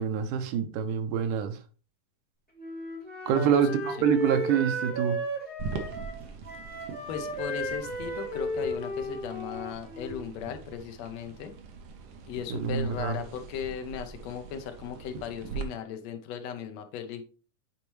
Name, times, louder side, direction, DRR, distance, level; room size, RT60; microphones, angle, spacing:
voice 1, 0.0-1.6 3.3-5.2 12.5-13.2, right 8 dB, 90° right, 9 dB, 2.2 m, -26 dB
Wind instrument woodwind instrument, 2.6-10.3, equal, 5° left, 1.9 m, -34 dB
voice 2, 3.3-3.7 7.1-11.5 12.3-17.3, left 7 dB, 70° left, 6 dB, 1.9 m, -37 dB
sound 1, 5.6-15.6, right 5 dB, 65° right, 1.9 m, -42 dB
8.8 x 4.2 x 3.1 m, 0.37 s
omnidirectional pair, 3.5 m